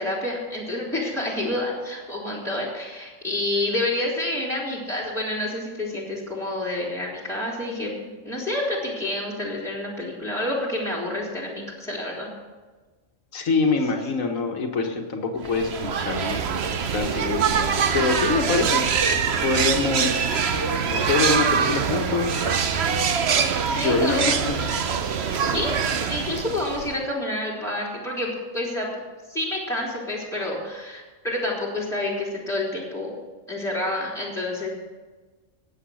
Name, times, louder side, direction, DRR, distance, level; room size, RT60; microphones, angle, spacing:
voice 1, 0.0-7.9 8.2-12.3 23.8-24.4 25.3-28.9 29.3-33.1 33.5-34.7, left 1 dB, ahead, -5 dB, 3.4 m, -28 dB
voice 2, 13.3-16.4 16.9-22.5 23.8-24.6, left 3 dB, 90° left, 3 dB, 1.9 m, -25 dB
sound 1, 15.4-27.0, right 6 dB, 55° right, 1.1 m, -24 dB
19.0 x 8.1 x 6.4 m, 1.3 s
omnidirectional pair, 1.4 m